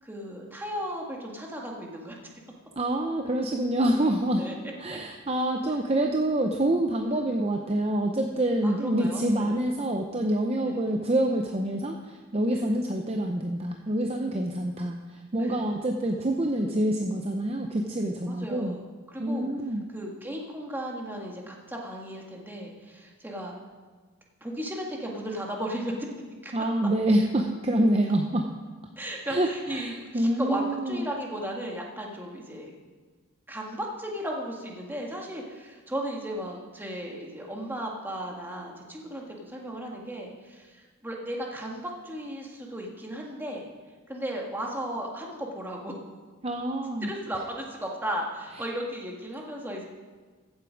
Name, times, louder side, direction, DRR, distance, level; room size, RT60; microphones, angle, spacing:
voice 1, 0.0-2.2 4.4-4.5 4.9-5.0 8.6-9.6 10.6-10.8 12.5-12.7 15.4-15.7 18.3-19.5 19.9-23.6 24.4-25.9 26.4-26.5 29.0-32.7 33.5-43.7 44.1-45.9 47.0-49.8, equal, 10° right, -1 dB, 1.7 m, -35 dB
voice 2, 2.8-4.4 4.8-18.8 19.2-19.8 26.5-28.5 29.3-31.0 46.4-47.1, right 1 dB, 30° right, 3 dB, 0.6 m, -26 dB
15.0 x 8.0 x 5.2 m, 1.4 s
head